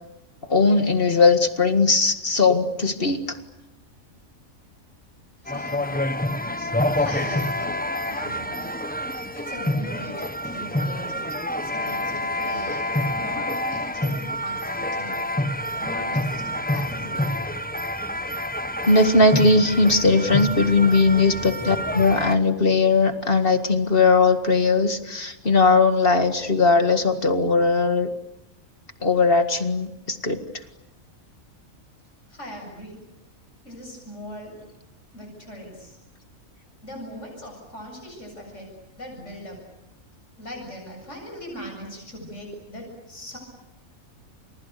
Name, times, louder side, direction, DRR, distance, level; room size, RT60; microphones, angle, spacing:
voice 1, 0.4-3.4 6.6-6.7 18.9-28.1 29.0-30.4, left 3 dB, 40° left, 7 dB, 2.1 m, -19 dB
voice 2, 5.4-6.1 6.9-8.7 9.3-12.9 13.2-15.3 15.8-16.4 16.7-17.4 32.3-33.0 33.6-34.6 35.1-36.0 36.8-38.7 39.0-39.6 40.4-43.4, equal, 60° left, 1 dB, 8.2 m, -40 dB
sound 1, 5.5-22.4, left 1 dB, 5° left, 0.9 m, -27 dB
29.5 x 28.5 x 6.8 m, 0.92 s
omnidirectional pair, 1.4 m